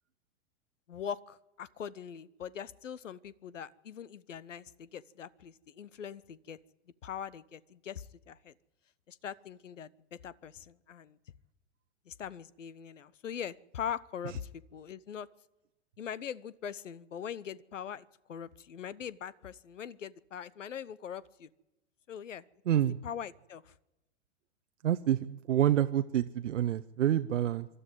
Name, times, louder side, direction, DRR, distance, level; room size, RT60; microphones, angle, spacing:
voice 1, 0.9-6.6 7.0-8.5 9.1-11.2 12.1-15.3 16.0-21.5 22.1-22.5 23.0-23.7, left 8 dB, 80° left, 20 dB, 1.0 m, -42 dB
voice 2, 22.7-23.0 24.8-27.7, right 11 dB, 75° right, 9 dB, 0.8 m, -28 dB
25.0 x 12.5 x 9.6 m, 0.99 s
hypercardioid pair, 105°, 37 cm